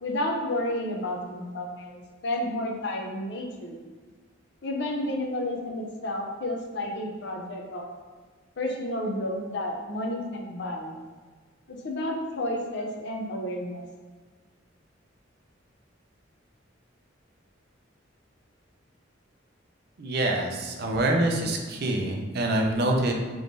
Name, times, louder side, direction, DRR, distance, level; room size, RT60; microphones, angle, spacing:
voice 1, 0.0-3.8 4.6-7.9 8.6-10.9 11.8-13.8, left 1 dB, 65° left, 1 dB, 0.5 m, -31 dB
voice 2, 20.0-23.1, right 1 dB, 55° right, 2 dB, 0.5 m, -25 dB
3.6 x 3.1 x 2.6 m, 1.4 s
head